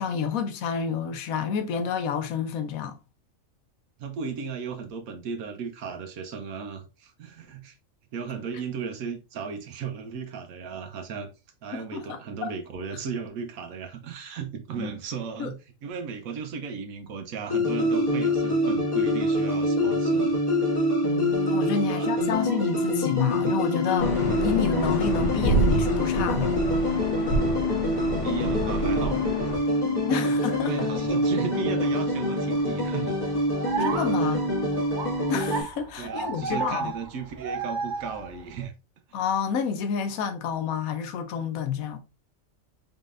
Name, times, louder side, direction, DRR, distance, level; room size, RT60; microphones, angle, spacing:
voice 1, 0.0-3.0 11.7-12.5 14.8-14.9 15.4-15.5 21.0-26.5 30.1-30.9 33.8-34.4 35.3-36.9 39.1-42.0, left 6 dB, 90° left, 1.1 m, -29 dB
voice 2, 4.0-7.8 8.1-11.3 11.6-20.3 21.8-22.4 27.9-29.5 30.2-33.2 34.1-34.4 36.0-38.7, right 6 dB, 80° right, 1.3 m, -36 dB
sound 1, 17.5-35.6, left 1 dB, 15° left, 2.0 m, -25 dB
sound 2, 24.0-29.6, equal, 60° left, 1.4 m, -28 dB
sound 3, 27.8-38.7, right 5 dB, 45° right, 0.6 m, -37 dB
4.2 x 3.8 x 2.5 m
omnidirectional pair, 1.4 m